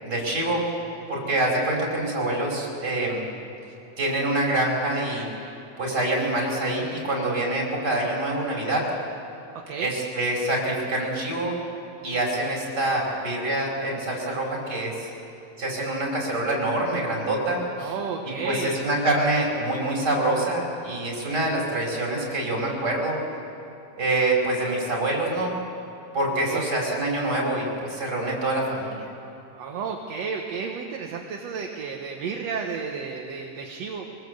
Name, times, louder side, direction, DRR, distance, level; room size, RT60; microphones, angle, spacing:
voice 1, 0.0-0.6 1.1-3.2 4.0-5.3 5.8-8.8 9.8-11.5 12.0-15.1 15.6-17.9 18.4-23.2 24.0-25.5 26.1-29.0, right 1 dB, 30° right, -2 dB, 5.6 m, -25 dB
voice 2, 17.8-18.8 26.4-26.7 29.6-34.0, right 5 dB, 60° right, 1 dB, 2.1 m, -32 dB
24.0 x 20.0 x 8.1 m, 2.9 s
omnidirectional pair, 3.9 m